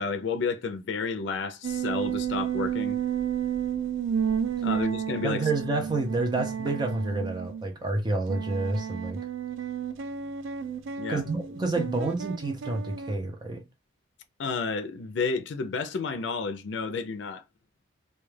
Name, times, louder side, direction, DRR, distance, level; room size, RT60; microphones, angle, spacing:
voice 1, 0.0-3.0 4.6-5.5 11.0-11.2 14.4-17.4, left 4 dB, 70° left, 0.4 m, -31 dB
sound 1, 1.6-7.6 8.3-13.1, right 8 dB, 85° right, 0.3 m, -31 dB
voice 2, 5.2-9.2 11.1-13.6, right 2 dB, 25° right, 0.5 m, -29 dB
2.3 x 2.2 x 3.1 m
head